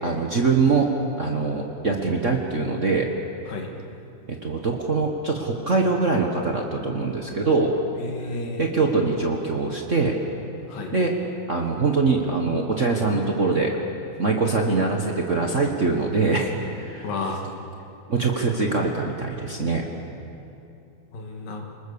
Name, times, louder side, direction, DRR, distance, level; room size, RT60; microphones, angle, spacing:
voice 1, 0.0-0.9 1.2-3.1 4.3-7.7 8.6-10.1 10.9-11.2 11.5-13.8 14.2-17.1 18.1-19.9, right 4 dB, 75° right, 1 dB, 0.6 m, -23 dB
voice 2, 8.0-8.6 10.7-10.9 17.0-17.4 21.1-21.7, left 3 dB, 90° left, 2 dB, 4.0 m, -31 dB
30.0 x 20.5 x 7.0 m, 2.8 s
omnidirectional pair, 3.8 m